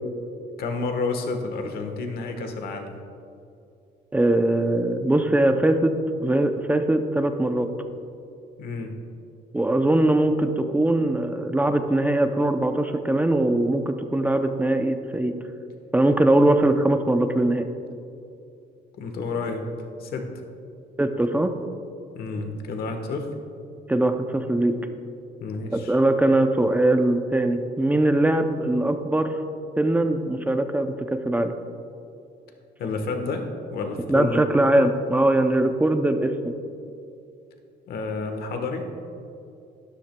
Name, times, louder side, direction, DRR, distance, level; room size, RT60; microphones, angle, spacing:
voice 1, 0.6-2.9 8.6-8.9 19.0-19.7 20.0-20.3 22.1-23.3 25.4-26.0 32.8-34.4 37.9-38.9, left 3 dB, 65° left, 5 dB, 1.2 m, -30 dB
voice 2, 4.1-5.9 6.2-7.7 9.5-15.3 15.9-17.7 21.0-21.5 23.9-24.7 25.7-29.3 29.8-30.9 31.3-31.5 34.1-36.3, right 1 dB, 10° right, 7 dB, 0.5 m, -21 dB
12.5 x 10.5 x 2.2 m, 2.6 s
cardioid pair, 110°, 17 cm